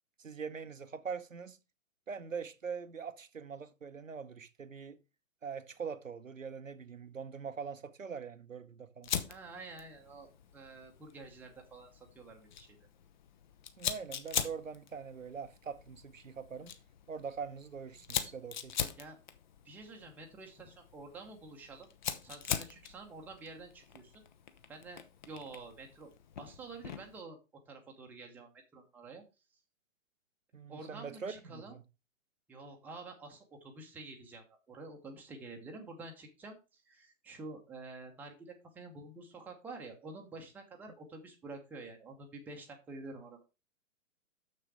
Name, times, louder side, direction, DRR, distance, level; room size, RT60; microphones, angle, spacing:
voice 1, 0.2-1.6 2.1-5.0 5.4-9.1 13.8-16.8 17.1-18.9 30.5-31.8, right 6 dB, 75° right, 0.9 m, -43 dB
Fire, 9.0-27.2, left 8 dB, 35° left, 0.8 m, -42 dB
voice 2, 9.3-11.9 12.1-12.9 19.0-19.2 19.6-21.9 22.2-24.1 24.7-25.0 25.3-26.1 26.4-27.4 27.7-29.2 30.7-31.7 32.5-43.4, right 3 dB, 5° right, 0.8 m, -49 dB
6.7 x 6.5 x 4.7 m
figure-of-eight pair, 125°, 40 cm